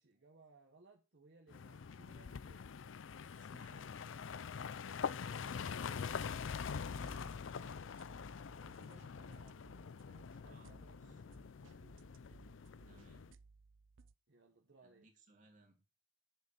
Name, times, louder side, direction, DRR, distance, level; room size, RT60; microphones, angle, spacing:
voice 1, 0.0-2.7 5.0-5.9 8.2-12.0 14.3-15.1, right 3 dB, 65° right, 1 dB, 1.3 m, -65 dB
sound 1, 1.5-13.3, left 6 dB, 80° left, 0.5 m, -44 dB
voice 2, 3.3-4.3 6.8-7.5 10.4-11.2 12.8-13.3 14.8-15.8, right 2 dB, 40° right, 3 dB, 2.8 m, -66 dB
sound 2, 6.9-14.1, right 4 dB, 80° right, 0.6 m, -63 dB
8.1 x 6.7 x 6.9 m, 0.34 s
head